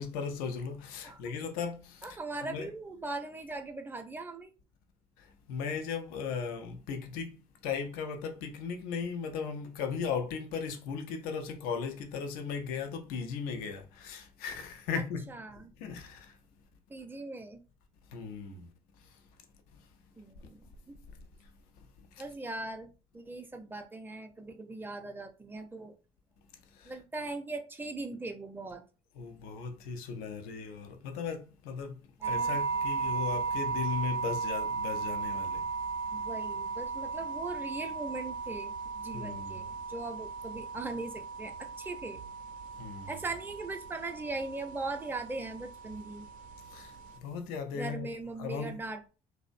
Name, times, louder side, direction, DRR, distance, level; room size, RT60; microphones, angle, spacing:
voice 1, 0.0-2.7 5.2-16.4 18.1-19.3 19.7-19.9 21.4-22.2 26.7-26.9 29.1-35.7 39.1-39.6 42.7-43.1 46.6-48.1 48.4-48.8, left 6 dB, 80° left, 0.5 m, -37 dB
voice 2, 2.0-4.5 15.3-15.7 16.9-17.6 20.2-21.0 22.2-25.9 26.8-28.8 32.2-32.6 36.1-42.2 43.1-46.3 47.7-49.1, right 3 dB, 15° right, 0.5 m, -40 dB
sound 1, 32.2-47.2, right 5 dB, 65° right, 0.5 m, -36 dB
2.4 x 2.0 x 2.5 m
hypercardioid pair, 60°, 15 cm